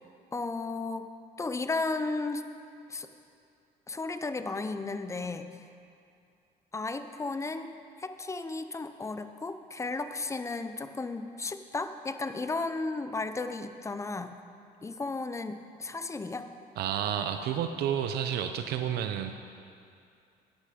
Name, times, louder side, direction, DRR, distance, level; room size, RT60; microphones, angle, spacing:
voice 1, 0.3-1.1 1.4-2.4 2.9-3.1 3.9-5.5 6.7-7.7 8.0-14.4 14.8-16.5, left 3 dB, 15° left, 9 dB, 0.6 m, -34 dB
voice 2, 16.8-19.4, right 9 dB, 75° right, 7 dB, 0.6 m, -30 dB
11.5 x 9.8 x 5.1 m, 2.5 s
cardioid pair, 110°, 17 cm